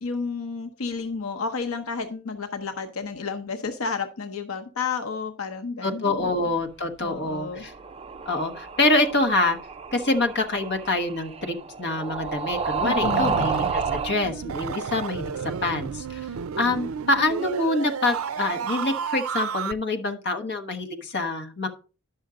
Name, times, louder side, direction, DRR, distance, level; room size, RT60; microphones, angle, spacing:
voice 1, 0.0-6.2 7.0-7.6 12.8-13.4, left 4 dB, 85° left, 8 dB, 0.8 m, -31 dB
voice 2, 5.8-7.7 8.2-9.6 9.9-15.2 15.6-16.2 16.6-21.7, left 2 dB, 55° left, 6 dB, 1.2 m, -25 dB
sound 1, 7.5-14.2, right 4 dB, 30° right, 0.5 m, -30 dB
sound 2, 13.0-19.7, right 6 dB, 80° right, 0.4 m, -32 dB
10.5 x 6.3 x 3.7 m, 0.35 s
head